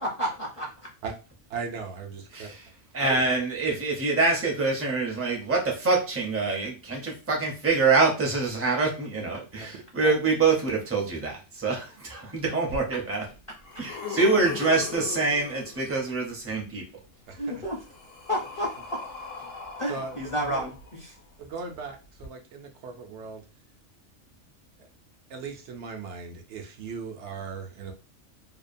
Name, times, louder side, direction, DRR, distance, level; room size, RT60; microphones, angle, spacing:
voice 1, 0.0-0.7 17.4-17.8 18.3-18.7 19.8-20.7 21.0-21.1, equal, 35° left, 0.5 m, -30 dB
voice 2, 1.5-2.5 3.0-3.2 9.6-9.7 10.0-10.1 17.3-17.6 19.9-20.2 20.4-20.7 21.4-23.4 24.8-24.9 25.3-27.9, right 5 dB, 70° right, 0.8 m, -38 dB
voice 3, 2.3-2.7 2.9-13.3 13.8-16.9, right 3 dB, 15° right, 0.5 m, -25 dB
sound 1, 12.7-12.8 13.3-16.1 17.3-21.2 22.2-22.3, left 5 dB, 75° left, 1.0 m, -39 dB
2.8 x 2.2 x 2.5 m
omnidirectional pair, 1.3 m